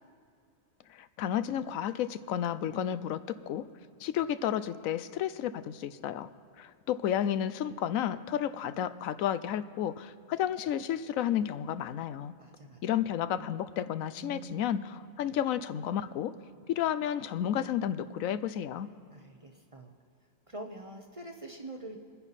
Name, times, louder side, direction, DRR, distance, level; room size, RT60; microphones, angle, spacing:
voice 1, 0.9-3.2 3.5-3.7 4.0-6.3 6.6-12.3 12.8-16.4 16.7-18.9, left 10 dB, 80° left, 13 dB, 1.0 m, -32 dB
voice 2, 12.4-12.8 13.3-13.5 14.2-14.9 19.1-19.9 20.5-22.0, right 1 dB, 30° right, 3 dB, 0.7 m, -45 dB
23.5 x 9.8 x 4.2 m, 2.4 s
omnidirectional pair, 1.4 m